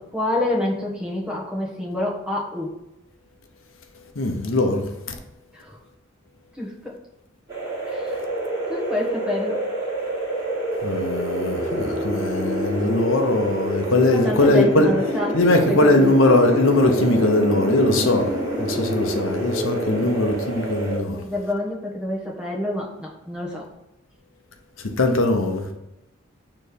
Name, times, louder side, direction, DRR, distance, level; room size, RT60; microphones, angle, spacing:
voice 1, 0.0-2.7 5.5-5.8 6.5-7.0 7.8-8.2 8.7-9.6 14.0-15.4 15.7-16.1 21.1-23.7, left 1 dB, 5° right, 1.2 m, -27 dB
voice 2, 4.2-4.8 10.8-14.9 15.3-18.3 18.6-21.2 25.0-25.7, left 2 dB, 75° left, 0.8 m, -20 dB
sound 1, 7.5-21.0, right 1 dB, 20° right, 1.9 m, -27 dB
6.5 x 3.2 x 5.1 m
head